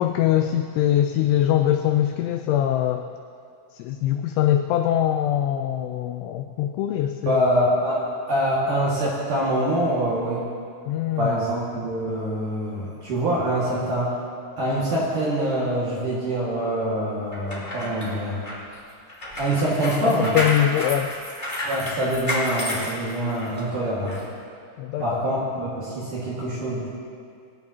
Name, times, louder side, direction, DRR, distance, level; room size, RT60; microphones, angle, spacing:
voice 1, 0.0-3.1 3.7-7.4 10.9-11.4 20.0-21.1 24.8-25.2, left 11 dB, 85° left, 6 dB, 2.7 m, -23 dB
voice 2, 7.3-10.4 11.2-14.1 14.6-18.5 19.4-20.4 21.6-24.2 25.0-26.9, right 1 dB, 55° right, -7 dB, 2.5 m, -25 dB
sound 1, 17.3-23.6 24.1-24.2, left 1 dB, 15° left, 1.5 m, -30 dB
21.0 x 10.5 x 2.8 m, 2.4 s
omnidirectional pair, 5.9 m